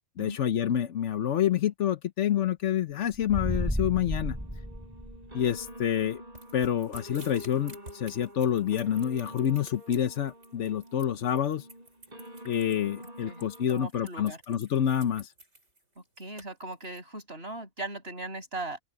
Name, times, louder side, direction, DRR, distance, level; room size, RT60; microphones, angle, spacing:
voice 1, 0.2-4.4 5.3-6.2 6.5-11.7 12.4-15.3, left 10 dB, 80° left, 1.2 m, -28 dB
sound 1, 3.1-5.6, equal, 5° right, 6.5 m, -32 dB
sound 2, 4.1-13.6, equal, 35° right, 4.4 m, -48 dB
sound 3, 6.4-17.0, right 1 dB, 75° right, 7.5 m, -51 dB
voice 2, 13.2-14.4 16.2-18.8, right 2 dB, 55° right, 7.9 m, -39 dB
open air
omnidirectional pair, 1.2 m